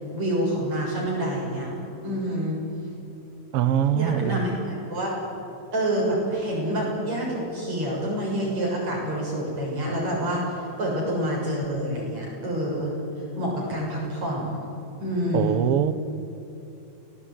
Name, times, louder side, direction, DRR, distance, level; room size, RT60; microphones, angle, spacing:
voice 1, 0.1-1.7 2.0-2.6 3.9-5.1 5.7-12.9 13.4-14.6 15.0-15.6, right 1 dB, 50° right, -3 dB, 8.0 m, -27 dB
voice 2, 3.5-4.4 15.3-15.9, right 10 dB, 85° right, 14 dB, 1.3 m, -23 dB
29.0 x 18.5 x 9.4 m, 3.0 s
omnidirectional pair, 4.0 m